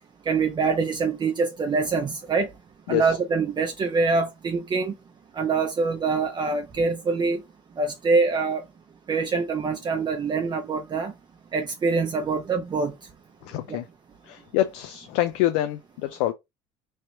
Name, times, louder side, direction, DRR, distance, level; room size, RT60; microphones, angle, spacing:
voice 1, 0.3-2.5 2.9-4.9 5.3-7.4 7.8-8.6 9.1-11.1 11.5-12.9 13.7-13.8, right 4 dB, 30° right, 0.6 m, -24 dB
voice 2, 13.4-13.8 14.3-16.3, left 14 dB, 80° left, 0.4 m, -26 dB
3.1 x 2.9 x 2.8 m
supercardioid pair, 85°, 15 cm